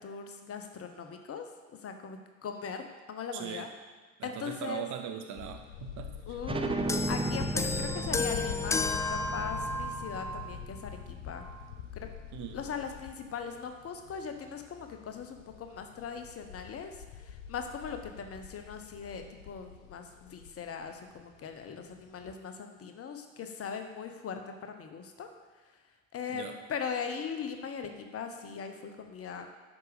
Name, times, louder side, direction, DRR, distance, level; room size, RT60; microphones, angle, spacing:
voice 1, 0.0-1.5 1.8-3.7 4.2-4.9 6.3-11.5 11.9-12.1 12.5-25.3 26.1-29.5, left 6 dB, 35° left, 6 dB, 1.1 m, -40 dB
voice 2, 3.3-3.7 4.2-6.4 12.3-12.6 26.3-26.6, right 8 dB, 50° right, 5 dB, 1.1 m, -40 dB
sound 1, 5.4-22.3, left 8 dB, 70° left, 0.7 m, -45 dB
sound 2, 6.4-11.7, right 2 dB, 15° right, 0.8 m, -36 dB
sound 3, 6.9-10.5 11.4-11.5, left 3 dB, 10° left, 0.4 m, -33 dB
9.4 x 6.3 x 5.0 m, 1.4 s
figure-of-eight pair, 50°, 39 cm